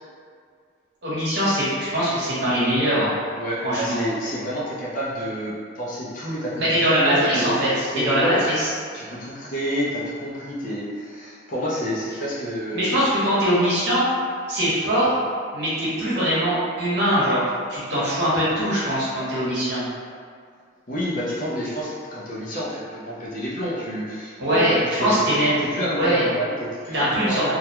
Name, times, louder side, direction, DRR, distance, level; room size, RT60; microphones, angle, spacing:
voice 1, 1.0-3.1 3.6-4.0 6.6-8.7 12.7-14.1 14.5-15.1 15.5-17.4 17.7-19.8 24.4-25.5 25.9-26.3 26.9-27.5, equal, 60° right, -9 dB, 0.9 m, -22 dB
voice 2, 3.4-7.6 7.9-8.4 8.9-13.0 20.9-27.5, equal, 40° left, -7 dB, 0.5 m, -29 dB
2.3 x 2.1 x 2.9 m, 2.1 s
head